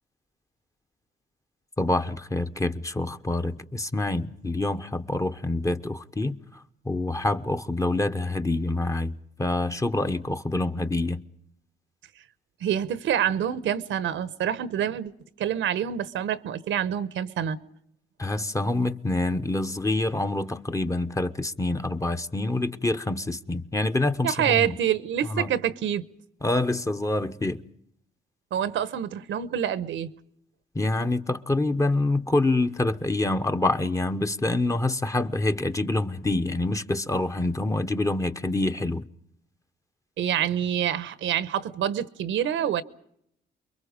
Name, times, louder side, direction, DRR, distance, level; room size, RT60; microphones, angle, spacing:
voice 1, 1.8-6.4 6.8-9.1 9.4-11.2 18.2-24.8 25.3-25.5 26.4-27.6 30.7-39.0, left 2 dB, 15° left, 1.0 m, -26 dB
voice 2, 12.6-15.1 15.4-17.6 24.2-26.0 28.5-30.1 40.2-42.8, right 9 dB, 75° right, 1.1 m, -26 dB
29.0 x 22.5 x 5.3 m
cardioid pair, 90°, 20 cm